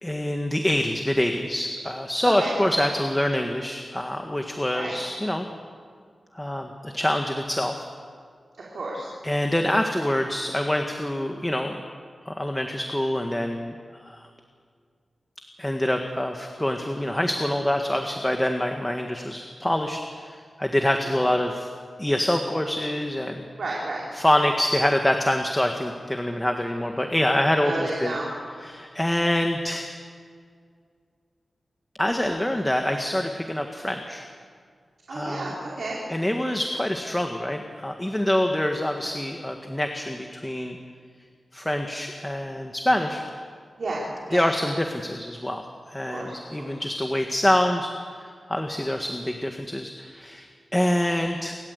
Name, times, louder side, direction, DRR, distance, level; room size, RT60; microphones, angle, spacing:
voice 1, 0.0-5.5 6.3-7.9 9.2-11.8 12.3-14.3 15.6-21.7 22.0-23.4 24.2-28.1 28.6-29.9 32.0-34.3 35.1-35.4 36.1-40.8 41.5-43.2 44.3-51.6, left 1 dB, 10° left, 4 dB, 1.7 m, -26 dB
voice 2, 2.4-2.9 4.7-5.0 8.7-9.1 21.0-21.2 23.6-24.0 27.5-28.3 35.1-36.0 43.8-44.5 46.1-46.8, right 2 dB, 75° right, -4 dB, 4.7 m, -32 dB
29.0 x 13.5 x 8.3 m, 2.1 s
wide cardioid pair, 70°, 0 cm